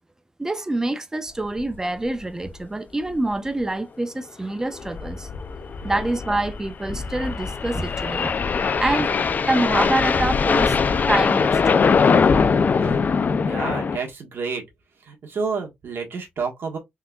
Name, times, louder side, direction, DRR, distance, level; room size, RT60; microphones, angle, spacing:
voice 1, 0.4-5.3 5.8-8.3 8.7-9.1 9.5-10.8 11.1-11.9, right 2 dB, 15° right, 0.5 m, -26 dB
sound 1, 1.6-1.8 2.0-2.1 2.5-2.6 3.1-3.3 4.7-14.0, left 5 dB, 45° left, 0.4 m, -22 dB
voice 2, 13.4-14.6 15.1-16.8, right 5 dB, 65° right, 1.3 m, -29 dB
3.7 x 3.4 x 2.3 m
cardioid pair, 100°, 4 cm